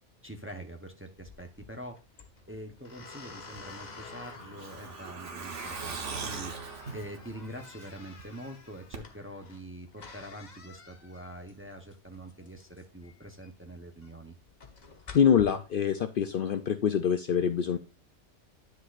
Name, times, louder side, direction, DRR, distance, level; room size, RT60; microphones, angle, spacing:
voice 1, 0.2-14.4, right 1 dB, 15° right, 4 dB, 0.7 m, -45 dB
sound 1, 1.2-15.4, left 4 dB, 40° left, 1.1 m, -50 dB
Truck, 3.5-8.2 8.5-8.6 8.9-9.0, right 5 dB, 80° right, 1.5 m, -40 dB
voice 2, 15.1-17.8, left 8 dB, 60° left, 8 dB, 0.6 m, -25 dB
9.7 x 6.4 x 2.5 m, 0.31 s
omnidirectional pair, 1.2 m